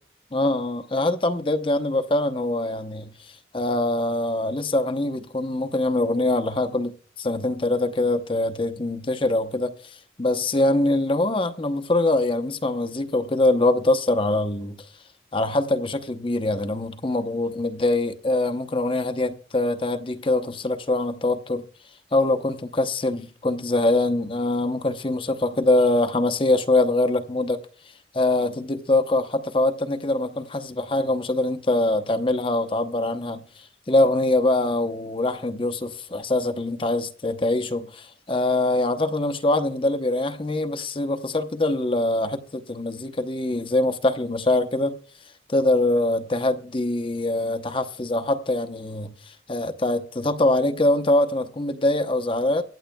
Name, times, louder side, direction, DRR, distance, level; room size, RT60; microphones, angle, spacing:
voice 1, 0.3-6.9 7.2-14.9 15.3-21.6 22.1-27.6 28.1-45.0 45.5-52.6, left 2 dB, 25° left, 0.7 m, -23 dB
23.5 x 8.0 x 2.2 m
head